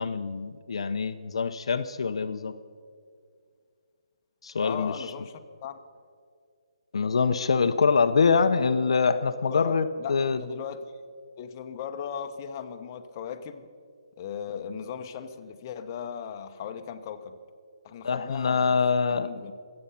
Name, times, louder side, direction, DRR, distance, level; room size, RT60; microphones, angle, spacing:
voice 1, 0.0-2.5 4.4-4.9 6.9-10.4 18.0-19.3, left 5 dB, 65° left, 8 dB, 0.7 m, -24 dB
voice 2, 4.6-5.8 9.5-11.0 11.4-13.7 14.2-17.4 17.8-18.8 19.1-19.5, left 7 dB, 30° left, 6 dB, 0.9 m, -37 dB
23.5 x 8.7 x 5.7 m, 2.2 s
hypercardioid pair, 155°, 3 cm